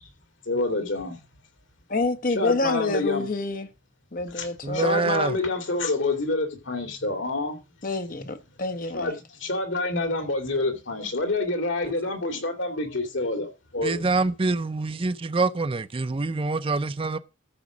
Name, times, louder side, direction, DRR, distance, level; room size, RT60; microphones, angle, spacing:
voice 1, 0.5-1.2 2.3-3.3 4.3-4.5 4.7-7.6 8.9-14.1, left 2 dB, 80° left, 2.6 m, -27 dB
voice 2, 1.9-3.7 4.1-5.0 7.8-9.1, left 3 dB, 50° left, 1.2 m, -28 dB
voice 3, 4.6-5.4 11.8-11.9 13.8-17.2, right 3 dB, 30° right, 0.5 m, -25 dB
13.5 x 4.9 x 6.1 m
head